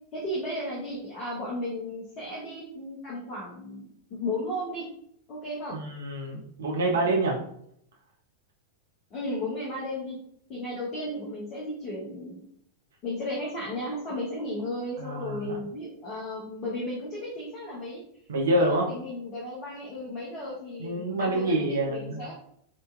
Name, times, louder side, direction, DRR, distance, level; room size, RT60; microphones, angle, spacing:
voice 1, 0.1-3.8 4.1-4.9 5.3-5.8 9.1-10.2 10.5-12.4 13.0-18.0 18.5-22.3, left 1 dB, 35° left, -6 dB, 0.9 m, -34 dB
voice 2, 5.7-7.4 15.0-15.6 18.3-18.9 20.8-22.3, right 1 dB, 65° right, 0 dB, 0.6 m, -27 dB
3.7 x 2.6 x 2.4 m, 0.70 s
figure-of-eight pair, 90°, 0 cm